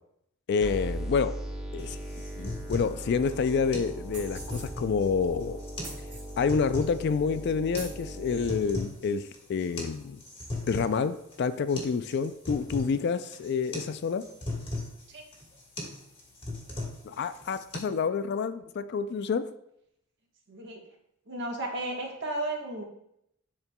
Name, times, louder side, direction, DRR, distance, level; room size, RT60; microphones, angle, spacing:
voice 1, 0.5-1.3 1.7-2.0 2.4-5.6 6.4-10.2 10.7-14.3 17.0-19.4, left 5 dB, 50° left, 12 dB, 0.3 m, -28 dB
sound 1, 0.6-8.6, right 1 dB, 5° right, 1.1 m, -39 dB
sound 2, 1.8-17.8, left 2 dB, 25° left, 1.4 m, -39 dB
sound 3, 4.1-4.7 5.8-6.3 7.1-7.2 7.7-8.0, right 2 dB, 35° right, 2.1 m, -44 dB
voice 2, 20.5-20.8 21.3-22.8, right 2 dB, 55° right, 0 dB, 1.2 m, -34 dB
10.5 x 4.4 x 2.2 m, 0.77 s
head